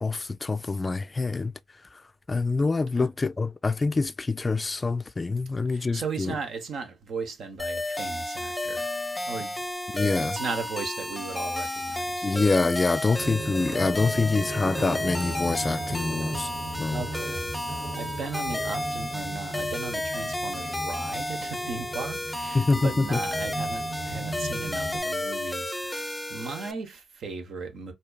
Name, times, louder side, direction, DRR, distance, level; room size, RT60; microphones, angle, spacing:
voice 1, 0.0-1.5 2.3-6.3 9.9-10.4 12.2-16.5 16.8-17.0 22.5-23.2, left 3 dB, 30° left, 0.3 m, -26 dB
voice 2, 5.7-8.9 9.3-9.6 10.0-12.3 16.9-17.5 17.9-27.9, right 4 dB, 70° right, 1.0 m, -36 dB
sound 1, 7.6-26.7, left 1 dB, 10° left, 0.7 m, -32 dB
sound 2, 13.2-25.0, right 2 dB, 85° right, 1.7 m, -37 dB
4.4 x 2.8 x 2.2 m
cardioid pair, 65°, 0 cm